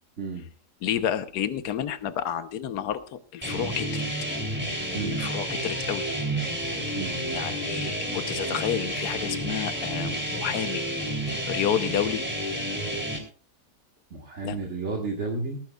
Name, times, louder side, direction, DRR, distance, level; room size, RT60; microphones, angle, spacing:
voice 1, 0.2-0.5 4.9-5.2 7.0-7.2 14.1-15.6, right 4 dB, 45° right, 0 dB, 1.9 m, -32 dB
voice 2, 0.8-4.0 5.2-6.1 7.3-10.9 11.3-12.2 14.4-14.6, left 9 dB, 75° left, 10 dB, 1.4 m, -30 dB
sound 1, 3.4-13.2, right 1 dB, 5° right, 2.9 m, -30 dB
19.0 x 14.0 x 2.4 m, 0.40 s
omnidirectional pair, 1.7 m